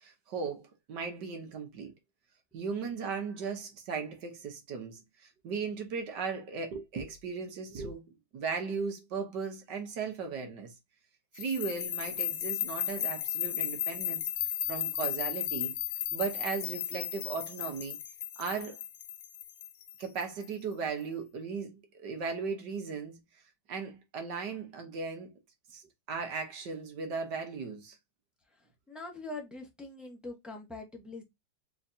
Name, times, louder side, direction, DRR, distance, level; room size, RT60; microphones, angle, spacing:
voice 1, 0.0-1.9 2.5-10.7 11.3-14.2 14.7-15.8 16.1-18.0 18.4-18.8 20.0-23.2 23.7-25.3 25.7-28.0, right 5 dB, 60° right, 1.7 m, -37 dB
sound 1, 11.4-20.4, left 12 dB, 80° left, 1.3 m, -35 dB
voice 2, 28.5-31.2, left 2 dB, ahead, 0.6 m, -43 dB
4.6 x 3.5 x 2.7 m
omnidirectional pair, 2.2 m